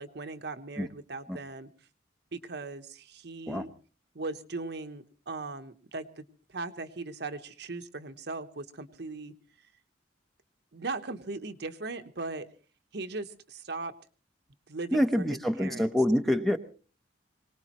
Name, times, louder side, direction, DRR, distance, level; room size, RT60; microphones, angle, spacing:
voice 1, 0.0-1.7 2.3-3.7 4.1-9.3 10.7-12.5 12.9-13.9 14.7-15.9, right 3 dB, 60° right, 8 dB, 1.1 m, -38 dB
voice 2, 14.9-16.6, equal, ahead, 7 dB, 0.9 m, -26 dB
24.5 x 18.5 x 3.0 m, 0.38 s
head